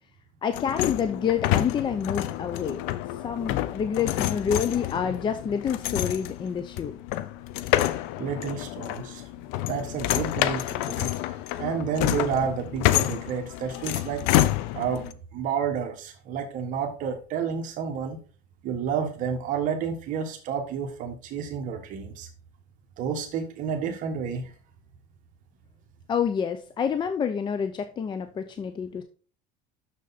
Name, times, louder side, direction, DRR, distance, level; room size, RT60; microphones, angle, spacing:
voice 1, 0.4-2.8 3.2-7.0 26.1-29.0, left 7 dB, 30° left, 9 dB, 0.6 m, -28 dB
sound 1, 0.5-15.1, left 14 dB, 75° left, 0.6 m, -28 dB
voice 2, 8.2-9.2 9.7-14.2 14.7-18.2 18.6-22.3 23.0-24.5, right 7 dB, 55° right, 4 dB, 1.4 m, -30 dB
6.6 x 6.5 x 4.1 m, 0.39 s
supercardioid pair, 125°, 16 cm